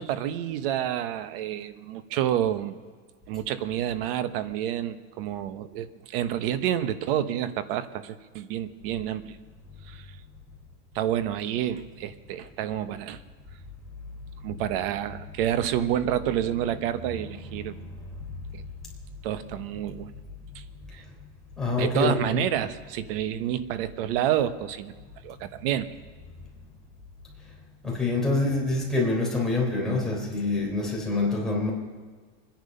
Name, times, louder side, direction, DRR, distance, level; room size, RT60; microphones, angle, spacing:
voice 1, 0.0-2.8 3.3-9.4 9.8-10.2 10.9-13.2 14.4-17.8 18.5-18.6 19.2-20.1 20.5-20.6 20.9-21.0 21.8-24.9 25.2-25.9, right 11 dB, 60° right, 12 dB, 1.1 m, -29 dB
voice 2, 17.1-17.8 21.6-22.5 27.8-31.7, left 3 dB, ahead, -4 dB, 3.7 m, -26 dB
25.0 x 10.5 x 5.4 m, 1.5 s
supercardioid pair, 170°, 32 cm